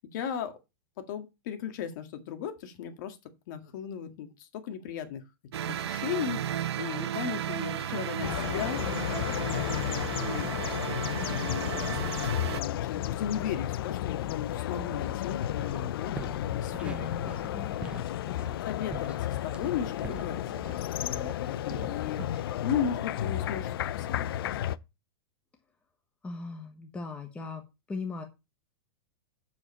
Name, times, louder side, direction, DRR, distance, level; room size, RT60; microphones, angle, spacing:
voice 1, 0.1-0.6 1.0-3.2 3.5-5.2 5.7-10.5 11.1-17.1 18.6-20.4 20.9-24.5, left 8 dB, 50° left, 1.9 m, -36 dB
sound 1, 5.5-12.6, right 10 dB, 80° right, 0.9 m, -34 dB
sound 2, 8.2-24.8, left 12 dB, 65° left, 0.6 m, -33 dB
sound 3, 15.6-15.8 16.1-21.4 21.7-22.4, right 4 dB, 10° right, 0.6 m, -44 dB
voice 2, 16.8-17.8 26.2-28.2, left 3 dB, 10° left, 1.2 m, -39 dB
7.8 x 7.3 x 4.3 m
supercardioid pair, 165°, 13 cm